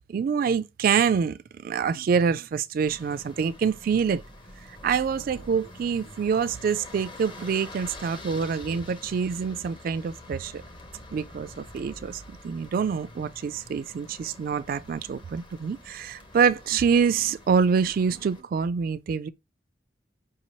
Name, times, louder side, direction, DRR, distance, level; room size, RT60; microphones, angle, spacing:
voice 1, 0.1-4.2 4.7-10.6 11.1-19.3, right 6 dB, 55° right, 0.3 m, -26 dB
sound 1, 2.8-18.4, left 1 dB, 25° left, 0.7 m, -46 dB
4.9 x 2.8 x 3.0 m
head